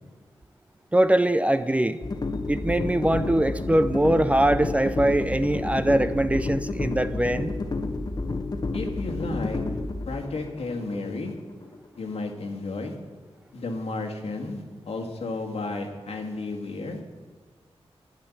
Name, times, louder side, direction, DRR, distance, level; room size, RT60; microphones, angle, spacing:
voice 1, 0.9-2.0 2.5-7.5, right 1 dB, 15° right, 12 dB, 0.5 m, -22 dB
sound 1, 2.0-12.1, left 3 dB, 40° left, 1.0 m, -31 dB
voice 2, 8.7-9.6 10.1-11.3 12.0-13.0 13.5-17.0, left 3 dB, 80° left, 2 dB, 1.7 m, -32 dB
10.5 x 10.0 x 7.1 m, 1.4 s
wide cardioid pair, 95°, 10 cm